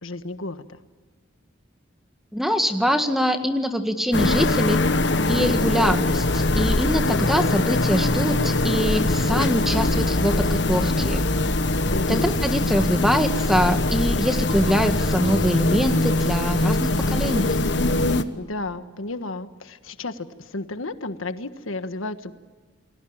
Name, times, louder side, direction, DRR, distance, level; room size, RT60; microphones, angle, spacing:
voice 1, 0.0-0.8 11.9-12.4 18.4-22.3, left 2 dB, 85° left, 10 dB, 1.5 m, -32 dB
voice 2, 2.3-4.8 5.3-11.3 12.1-17.6, equal, ahead, 6 dB, 1.8 m, -24 dB
sound 1, 4.1-18.2, left 2 dB, 60° left, 1.3 m, -22 dB
29.5 x 20.5 x 8.9 m, 1.4 s
head